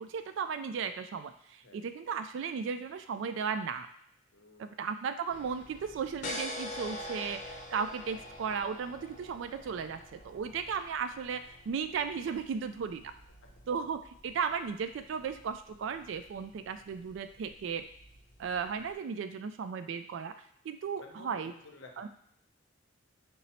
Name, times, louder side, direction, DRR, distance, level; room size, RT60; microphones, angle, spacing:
voice 1, 0.0-3.9 4.6-13.1 13.7-17.8 18.4-20.3 20.6-21.5 22.0-22.1, right 6 dB, 75° right, 9 dB, 0.3 m, -35 dB
voice 2, 4.3-4.9 13.4-13.5 21.0-22.1, left 2 dB, 75° left, 3 dB, 0.7 m, -53 dB
sound 1, 5.3-18.9, left 1 dB, 40° left, 0.6 m, -46 dB
5.2 x 2.0 x 4.1 m, 0.71 s
head